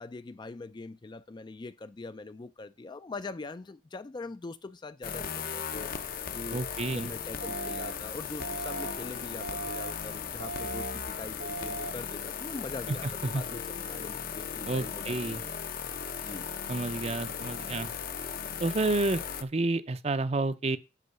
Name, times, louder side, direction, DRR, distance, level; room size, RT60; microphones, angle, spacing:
voice 1, 0.0-5.9 6.3-6.6 6.9-15.6 16.2-16.5, left 3 dB, 25° left, 0.4 m, -43 dB
sound 1, 5.0-19.4, left 7 dB, 50° left, 0.7 m, -37 dB
voice 2, 6.5-7.1 12.9-13.0 13.2-13.4 14.7-15.4 16.7-17.9 18.6-20.8, right 2 dB, 35° right, 0.6 m, -30 dB
sound 2, 7.4-7.9 8.4-8.9 9.4-9.9 10.4-10.9 11.4-11.9, right 3 dB, 80° right, 1.1 m, -38 dB
8.3 x 4.6 x 6.7 m
head